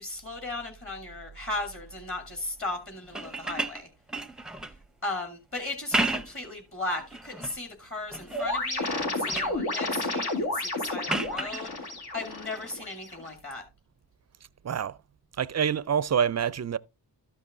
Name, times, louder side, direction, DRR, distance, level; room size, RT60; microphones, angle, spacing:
voice 1, 0.0-3.9 5.0-13.6, left 2 dB, 30° left, 2.6 m, -36 dB
sound 1, 3.0-4.8 5.7-6.5 7.0-7.6 8.1-8.6 8.9-9.6 11.1-11.6 13.4-13.5, right 2 dB, ahead, 0.7 m, -32 dB
sound 2, 8.3-13.3, left 2 dB, 65° left, 3.4 m, -31 dB
voice 2, 14.6-15.0 15.4-16.8, right 8 dB, 40° right, 0.5 m, -26 dB
13.0 x 5.4 x 3.7 m
wide cardioid pair, 90°, 41 cm